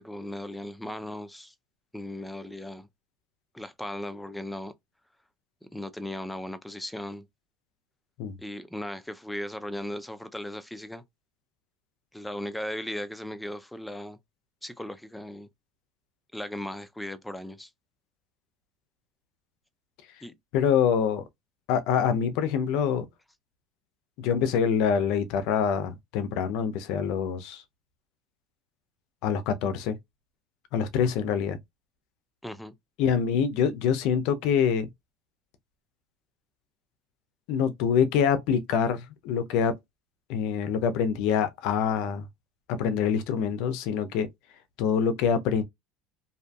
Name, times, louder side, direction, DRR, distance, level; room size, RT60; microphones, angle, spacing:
voice 1, 0.0-1.5 1.9-2.9 3.5-4.7 5.7-7.2 8.4-11.0 12.1-14.2 14.6-15.5 16.3-17.7 20.2-20.3 32.4-32.7, left 1 dB, 5° left, 0.4 m, -37 dB
voice 2, 20.5-21.2 21.7-23.1 24.2-27.6 29.2-30.0 30.7-31.6 33.0-34.9 37.5-39.7 40.3-42.3 42.7-44.3 44.8-45.6, left 7 dB, 70° left, 0.5 m, -25 dB
2.6 x 2.5 x 2.2 m
supercardioid pair, 115°, 0 cm